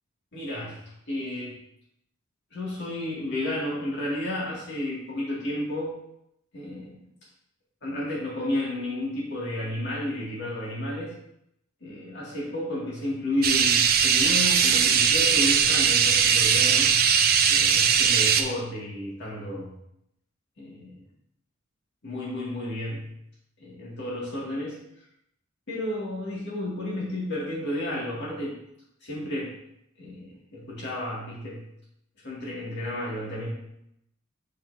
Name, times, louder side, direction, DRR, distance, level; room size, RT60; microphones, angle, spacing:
voice 1, 0.3-0.8 1.1-1.6 2.5-6.0 6.5-7.0 7.8-11.1 11.8-16.9 17.5-19.7 20.6-21.0 22.0-23.1 23.6-24.8 25.7-28.6 29.0-29.5 30.0-31.6 32.2-33.5, left 1 dB, 55° left, -5 dB, 2.4 m, -32 dB
sound 1, 13.4-18.4, right 7 dB, 50° right, 0.5 m, -20 dB
7.3 x 5.8 x 2.8 m, 0.78 s
head